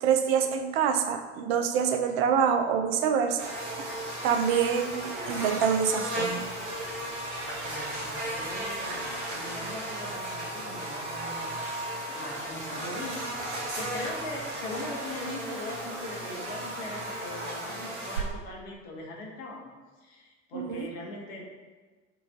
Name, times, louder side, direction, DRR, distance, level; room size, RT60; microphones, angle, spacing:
voice 1, 0.0-3.4 3.8-3.9 4.2-6.5 20.5-20.9, right 7 dB, 60° right, 6 dB, 0.4 m, -26 dB
Buzz, 3.4-18.2, right 1 dB, 75° right, 0.8 m, -35 dB
voice 2, 7.6-19.7 20.0-21.5, left 2 dB, 60° left, -1 dB, 0.9 m, -41 dB
5.7 x 2.4 x 2.4 m, 1.4 s
figure-of-eight pair, 60°, 35 cm